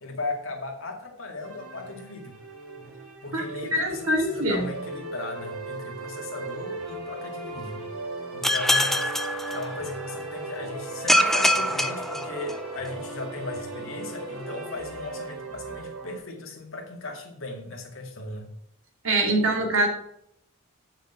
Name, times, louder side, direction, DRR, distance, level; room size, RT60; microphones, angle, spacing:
voice 1, 0.0-2.4 3.2-7.8 8.3-9.0 9.5-18.5, left 2 dB, 65° left, 2 dB, 2.1 m, -37 dB
sound 1, 1.4-16.2, right 2 dB, 85° right, 3.6 m, -37 dB
voice 2, 3.7-4.7 19.0-19.9, right 1 dB, 65° right, 1 dB, 2.5 m, -23 dB
sound 2, 8.4-10.2 11.1-12.9, left 1 dB, ahead, 0.4 m, -24 dB
8.0 x 6.4 x 5.5 m, 0.77 s
head